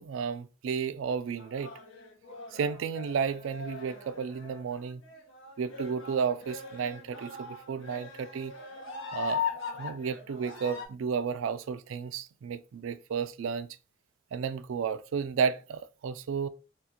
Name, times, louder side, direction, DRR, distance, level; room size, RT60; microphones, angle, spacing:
voice 1, 0.0-1.7 2.5-5.0 5.6-8.5 9.1-9.4 9.8-13.7 14.3-16.5, right 6 dB, 80° right, 0.3 m, -32 dB
sound 1, 1.4-10.9, left 5 dB, 85° left, 0.8 m, -40 dB
2.8 x 2.4 x 3.7 m
head